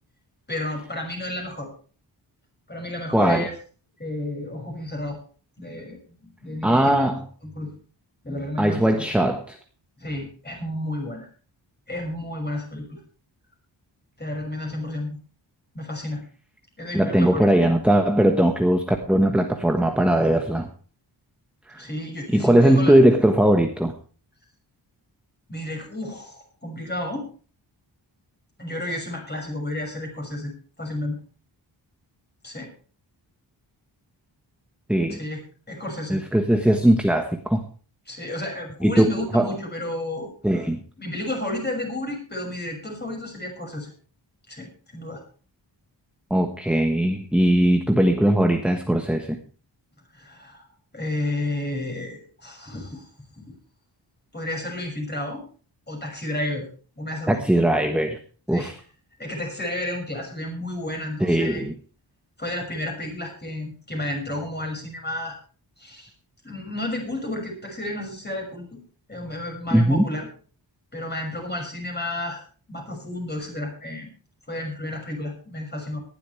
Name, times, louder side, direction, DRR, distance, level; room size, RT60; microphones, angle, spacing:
voice 1, 0.5-1.7 2.7-3.5 4.0-5.2 5.6-7.1 7.4-7.7 8.2-9.1 10.0-11.3 11.9-13.0 14.2-15.2 15.7-16.2 16.8-17.5 21.7-22.9 25.5-27.3 28.6-30.5 30.8-31.2 32.4-32.7 35.1-35.4 35.7-36.2 38.1-40.3 41.0-43.9 44.5-45.2 50.1-50.7 50.9-53.1 53.5-53.6 54.3-55.4 55.9-56.7 57.0-57.4 58.5-58.7 59.2-61.6 62.4-65.4 65.8-66.1 66.4-68.8 69.1-70.3 70.9-72.4 72.7-74.1 74.5-76.0, left 1 dB, 20° left, 1 dB, 6.2 m, -31 dB
voice 2, 3.1-3.5 6.6-7.2 8.6-9.6 16.9-20.7 21.7-21.9 22.3-23.9 34.9-35.2 36.1-37.6 38.8-39.5 40.4-40.8 46.3-49.4 57.3-58.2 58.5-58.7 61.2-61.7 69.7-70.0, right 1 dB, 5° right, 4 dB, 1.3 m, -19 dB
19.0 x 12.0 x 3.3 m, 0.40 s
wide cardioid pair, 115°, 45 cm